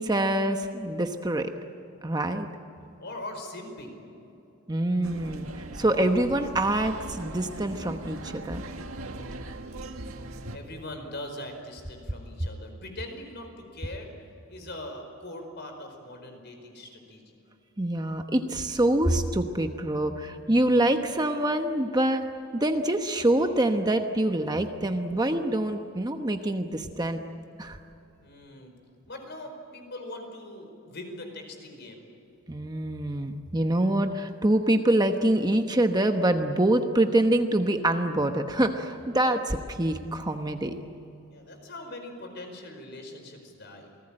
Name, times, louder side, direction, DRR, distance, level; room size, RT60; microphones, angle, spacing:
voice 1, 0.0-1.5 2.0-2.5 4.7-8.6 17.8-22.2 22.5-27.2 27.6-27.8 32.5-40.7, right 1 dB, 20° right, 6 dB, 1.0 m, -25 dB
voice 2, 3.0-4.0 10.5-14.1 14.5-17.4 28.2-28.7 29.1-32.0 41.3-43.9, left 1 dB, 50° left, 5 dB, 5.0 m, -41 dB
sound 1, 5.0-10.6, right 1 dB, 75° right, 1.9 m, -40 dB
28.5 x 19.5 x 8.9 m, 2.8 s
head